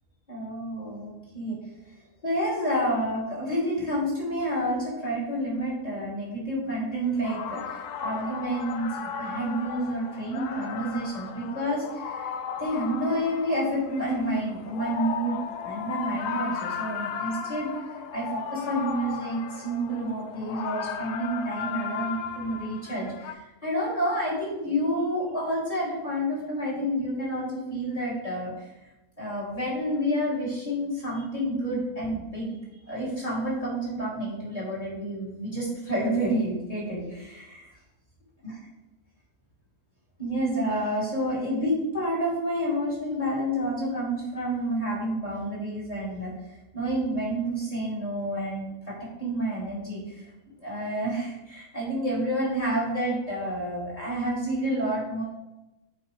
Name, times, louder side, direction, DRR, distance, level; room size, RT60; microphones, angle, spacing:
voice 1, 0.3-1.6 2.2-12.3 12.6-17.7 18.1-28.5 29.2-32.6 32.9-37.7 38.4-38.5 40.2-46.3 46.7-50.3 50.6-55.2, right 1 dB, 20° left, -7 dB, 2.9 m, -29 dB
sound 1, 7.1-23.3, left 7 dB, 75° left, 1.1 m, -35 dB
8.8 x 5.2 x 3.3 m, 0.99 s
omnidirectional pair, 1.8 m